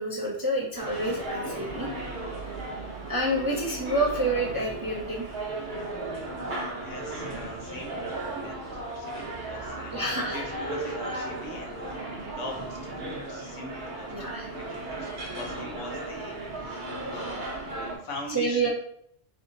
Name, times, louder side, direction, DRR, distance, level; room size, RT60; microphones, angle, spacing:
voice 1, 0.0-1.9 3.1-5.3 9.9-10.4 14.1-14.6 18.3-18.7, right 1 dB, 30° right, -3 dB, 0.4 m, -28 dB
sound 1, 0.7-17.9, right 2 dB, 45° right, 1.0 m, -35 dB
voice 2, 6.1-14.1 14.5-18.7, left 1 dB, 85° left, 1 dB, 1.2 m, -42 dB
3.3 x 2.7 x 3.8 m, 0.70 s
omnidirectional pair, 1.2 m